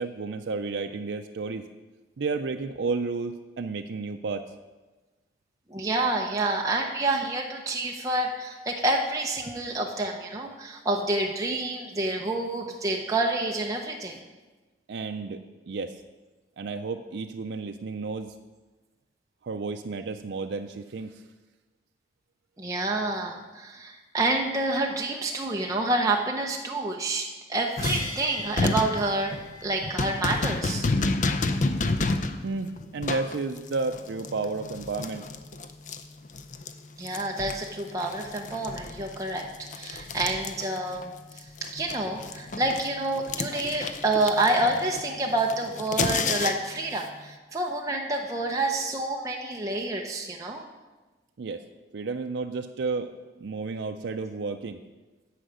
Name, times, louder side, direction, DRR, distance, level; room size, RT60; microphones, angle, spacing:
voice 1, 0.0-1.7 2.2-4.5 14.9-15.4 15.7-16.0 16.6-18.3 19.4-21.2 32.4-35.3 51.4-51.6 51.9-53.1 53.4-54.8, right 4 dB, 85° right, 6 dB, 0.4 m, -32 dB
voice 2, 5.7-14.2 22.6-29.3 29.6-30.8 37.0-39.5 39.7-41.4 41.7-50.6, right 2 dB, 20° right, 0 dB, 0.7 m, -28 dB
sound 1, 27.8-36.7 37.0-41.0 41.3-46.8, left 3 dB, 45° left, 0.5 m, -30 dB
sound 2, 27.8-34.8, left 1 dB, 20° left, 1.4 m, -45 dB
10.0 x 5.0 x 8.0 m, 1.2 s
head